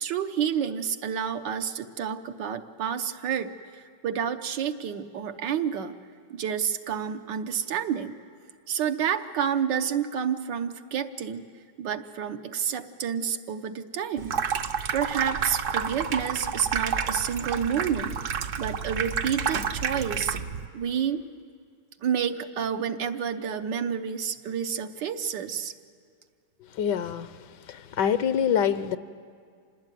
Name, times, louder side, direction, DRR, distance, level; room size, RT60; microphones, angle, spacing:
voice 1, 0.0-3.5 4.0-6.0 6.3-8.1 8.7-11.4 11.8-14.4 14.9-20.4 20.7-21.2 22.0-25.7, right 8 dB, 80° right, 7 dB, 1.6 m, -29 dB
Water tap faucet / Sink (filling or washing), 14.2-20.7, right 6 dB, 55° right, 1.0 m, -30 dB
voice 2, 26.8-27.4 27.7-29.0, left 8 dB, 75° left, 13 dB, 1.4 m, -25 dB
26.0 x 20.0 x 9.2 m, 2.2 s
omnidirectional pair, 1.9 m